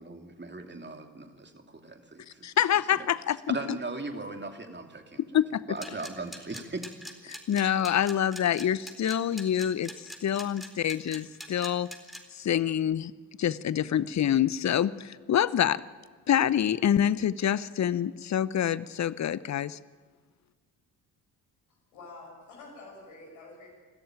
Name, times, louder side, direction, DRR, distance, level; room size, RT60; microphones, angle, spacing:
voice 1, 0.0-2.5 2.9-3.1 3.5-5.2 5.7-6.9, right 3 dB, 20° right, 5 dB, 2.7 m, -38 dB
voice 2, 2.4-3.5 5.3-5.6 7.3-9.9 10.2-11.9 12.3-13.1 13.4-15.8 16.3-19.8, left 10 dB, 35° left, 19 dB, 0.8 m, -26 dB
sound 1, 5.8-12.2, equal, ahead, 4.0 m, -42 dB
voice 3, 21.9-23.7, left 3 dB, 75° left, -4 dB, 7.1 m, -47 dB
25.5 x 13.5 x 9.0 m, 1.5 s
hypercardioid pair, 40°, 49 cm